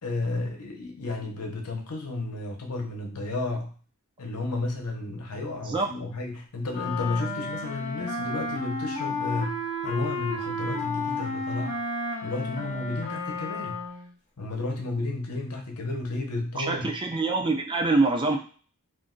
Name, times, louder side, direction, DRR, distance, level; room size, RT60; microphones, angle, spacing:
voice 1, 0.0-3.7 4.2-11.8 12.2-13.8 14.4-16.9, left 2 dB, 85° left, 1 dB, 0.8 m, -32 dB
Wind instrument woodwind instrument, 6.7-14.1, left 2 dB, 35° left, 0.7 m, -32 dB
voice 2, 16.6-18.4, right 3 dB, 20° right, 3 dB, 0.4 m, -25 dB
2.5 x 2.2 x 3.7 m, 0.40 s
head